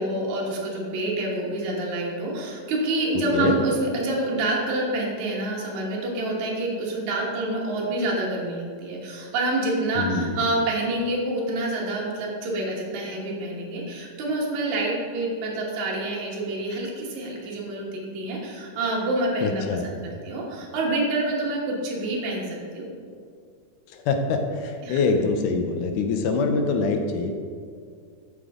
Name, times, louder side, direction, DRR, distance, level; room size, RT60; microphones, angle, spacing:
voice 1, 0.0-22.9 24.8-25.0, right 2 dB, 65° right, -4 dB, 2.7 m, -27 dB
voice 2, 10.0-10.4 19.4-19.9 23.9-27.3, left 4 dB, 80° left, 5 dB, 2.2 m, -24 dB
13.0 x 5.3 x 3.7 m, 2.2 s
omnidirectional pair, 3.8 m